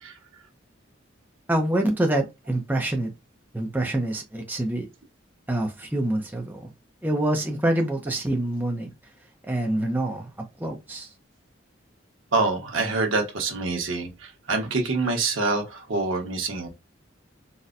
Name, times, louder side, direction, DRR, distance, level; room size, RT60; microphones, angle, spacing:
voice 1, 1.5-3.1 3.5-4.9 5.5-6.7 7.0-8.9 9.4-11.1, right 1 dB, 10° right, 0.5 m, -26 dB
voice 2, 12.3-16.7, right 3 dB, 80° right, 1.0 m, -26 dB
4.0 x 2.1 x 2.5 m
head